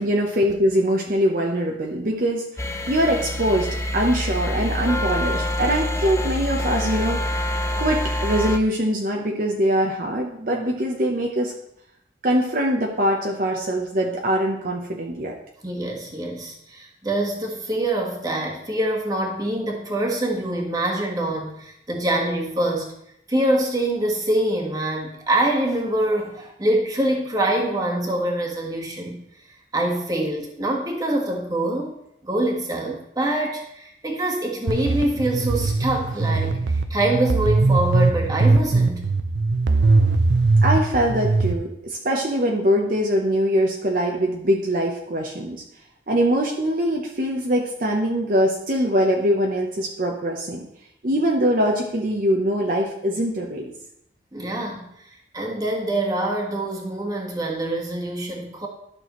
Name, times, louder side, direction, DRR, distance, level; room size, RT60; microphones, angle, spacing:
voice 1, 0.0-7.5 7.8-11.5 12.2-15.4 40.6-45.6 46.1-50.7 51.0-53.7, equal, 50° right, 0 dB, 0.8 m, -23 dB
sound 1, 2.6-8.6, left 1 dB, 15° left, 0.5 m, -26 dB
voice 2, 15.6-22.9 23.3-29.2 29.7-32.0 32.2-39.1 54.3-54.9 55.3-58.7, right 1 dB, 20° right, 0 dB, 1.5 m, -25 dB
sound 2, 34.7-41.5, right 3 dB, 85° right, 0.6 m, -20 dB
12.0 x 6.2 x 3.1 m, 0.78 s
head